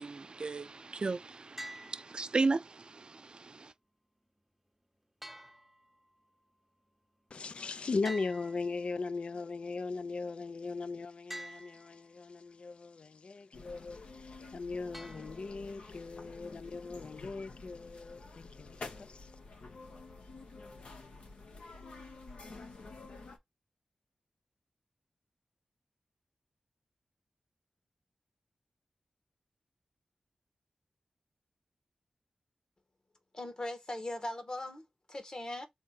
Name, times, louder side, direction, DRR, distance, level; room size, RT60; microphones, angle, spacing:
voice 1, 0.0-3.7, right 3 dB, 50° right, 0.4 m, -35 dB
sound 1, 1.6-2.6 5.2-6.3 8.0-9.3 11.3-12.3 14.9-15.9, right 1 dB, 5° right, 0.6 m, -48 dB
voice 2, 7.3-19.3, left 4 dB, 65° left, 0.3 m, -39 dB
sound 2, 13.5-23.4, left 3 dB, 80° left, 1.0 m, -49 dB
voice 3, 33.3-35.7, left 1 dB, 40° left, 1.4 m, -40 dB
3.6 x 3.2 x 4.3 m
cardioid pair, 50°, 2 cm